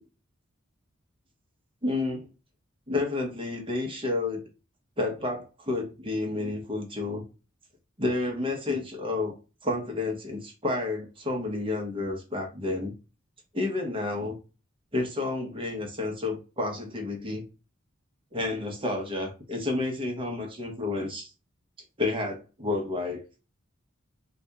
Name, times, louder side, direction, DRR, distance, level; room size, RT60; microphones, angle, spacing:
voice 1, 1.8-2.3 2.9-4.4 5.0-7.2 8.0-9.3 9.6-12.9 13.5-14.4 14.9-17.4 18.3-21.3 22.0-23.2, left 2 dB, 25° right, 0.8 m, -30 dB
2.7 x 2.5 x 3.4 m
head